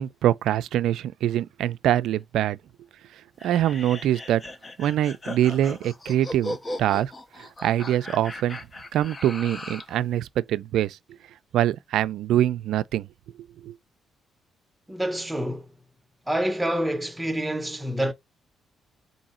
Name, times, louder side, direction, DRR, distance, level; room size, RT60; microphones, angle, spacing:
voice 1, 0.0-2.6 3.4-4.4 4.8-7.1 7.4-8.6 8.9-11.0 11.5-13.1 13.6-13.7, right 11 dB, 80° right, 0.3 m, -24 dB
sound 1, 3.4-10.0, left 1 dB, 25° left, 0.6 m, -38 dB
voice 2, 14.9-15.7 16.3-18.1, right 1 dB, 10° right, 0.8 m, -27 dB
3.8 x 2.7 x 4.2 m
cardioid pair, 90°, 0 cm